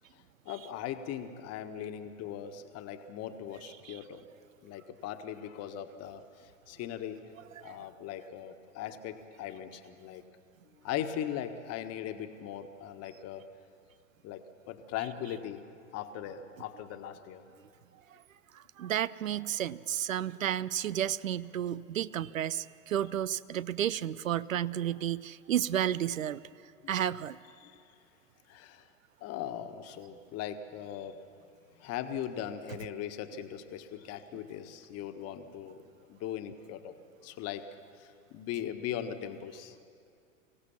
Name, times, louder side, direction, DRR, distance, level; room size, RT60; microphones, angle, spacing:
voice 1, 0.1-4.3 4.6-7.2 7.6-10.2 10.8-13.4 14.2-15.6 15.9-17.4 26.8-26.9 27.6-27.9 28.5-28.9 29.2-31.2 31.7-35.8 36.1-36.9 37.2-37.7 38.0-39.8, left 10 dB, 40° left, 9 dB, 1.5 m, -39 dB
voice 2, 18.5-26.4 26.9-27.4, right 10 dB, 80° right, 19 dB, 0.6 m, -32 dB
25.0 x 16.5 x 7.2 m, 2.4 s
figure-of-eight pair, 90°, 39 cm